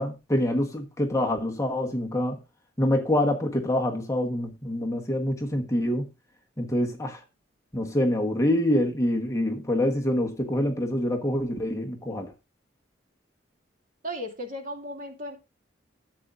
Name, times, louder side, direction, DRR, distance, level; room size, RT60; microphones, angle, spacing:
voice 1, 0.0-2.4 2.8-6.1 6.6-7.2 7.7-12.3, left 1 dB, 15° left, 1.3 m, -26 dB
voice 2, 14.0-15.4, equal, 45° right, 2.6 m, -35 dB
13.0 x 8.3 x 2.6 m
head